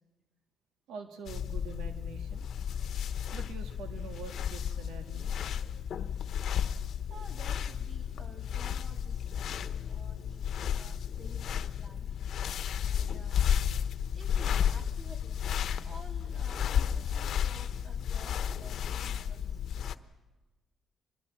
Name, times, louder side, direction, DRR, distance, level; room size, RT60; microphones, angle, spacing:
voice 1, 0.9-2.5 3.3-5.5, right 5 dB, 85° right, 5 dB, 1.7 m, -45 dB
sound 1, 1.3-19.9, left 8 dB, 65° left, 1.1 m, -33 dB
voice 2, 2.4-3.0 7.1-12.1 12.8-13.5 14.1-15.3 15.8-19.6, right 2 dB, 40° right, 4 dB, 3.3 m, -53 dB
25.5 x 21.0 x 7.5 m, 1.2 s
cardioid pair, 90°, 0 cm